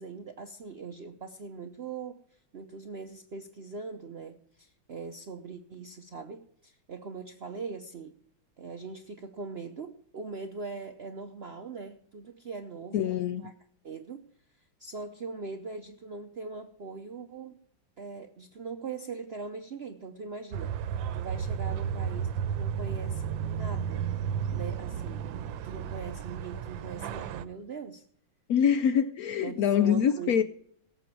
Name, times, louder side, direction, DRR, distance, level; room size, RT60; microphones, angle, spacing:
voice 1, 0.0-8.1 8.6-13.0 13.4-13.5 13.8-14.3 14.8-17.6 18.0-24.1 24.5-25.2 25.6-28.0 29.4-30.4, right 4 dB, 65° right, 0.6 m, -41 dB
voice 2, 12.9-13.5 28.5-30.4, left 8 dB, 70° left, 0.8 m, -25 dB
sound 1, 20.5-27.4, right 8 dB, 80° right, 1.4 m, -33 dB
18.0 x 7.7 x 4.5 m
omnidirectional pair, 2.1 m